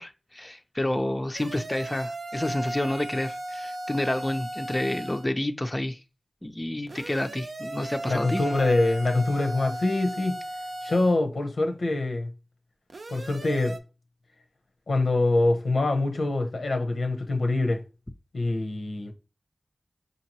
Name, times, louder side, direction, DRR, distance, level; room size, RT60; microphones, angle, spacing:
voice 1, 0.0-6.0 6.4-8.4, left 1 dB, 20° left, 0.4 m, -29 dB
sound 1, 1.3-5.3 6.9-11.2 12.9-13.8, right 1 dB, 70° right, 0.6 m, -36 dB
voice 2, 8.1-10.4 10.8-12.3 13.1-13.8 14.9-17.8 18.3-19.1, left 2 dB, 90° left, 0.8 m, -24 dB
5.2 x 2.8 x 2.9 m
wide cardioid pair, 55°, 0 cm